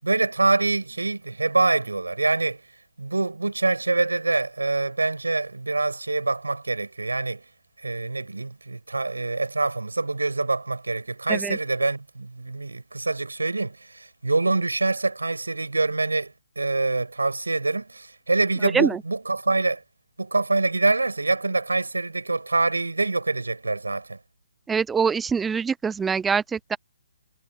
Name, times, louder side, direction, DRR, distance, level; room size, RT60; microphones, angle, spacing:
voice 1, 0.0-2.6 3.0-7.4 7.8-19.8 20.2-24.2, right 3 dB, 90° right, 6.7 m, -25 dB
voice 2, 24.7-26.8, right 6 dB, 10° right, 0.7 m, -24 dB
figure-of-eight pair, 145°, 0 cm